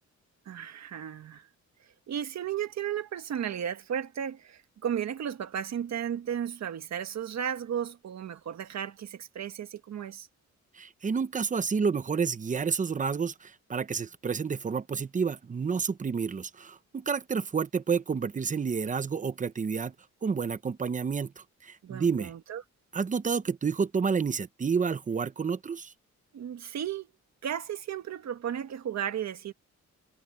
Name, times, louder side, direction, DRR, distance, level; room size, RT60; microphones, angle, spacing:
voice 1, 0.4-1.5 2.1-10.3 21.8-22.6 26.3-27.1 27.4-29.5, right 9 dB, 65° right, 1.6 m, -34 dB
voice 2, 10.7-19.9 20.2-22.3 22.9-25.9, right 5 dB, 25° right, 0.8 m, -30 dB
wide cardioid pair, 150°, 29 cm